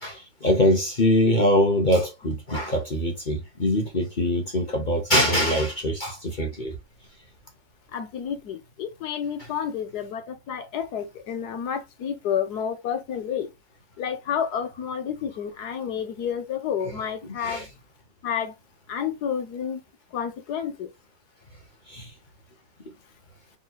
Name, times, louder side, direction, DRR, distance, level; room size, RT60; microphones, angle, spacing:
voice 1, 0.0-6.8 17.4-17.7 21.9-22.1, equal, 40° left, 0.7 m, -23 dB
voice 2, 7.9-13.5 14.0-17.7 18.2-18.5 18.9-19.8 20.1-20.9, left 8 dB, 65° left, 1.3 m, -30 dB
4.3 x 3.8 x 2.2 m
omnidirectional pair, 2.0 m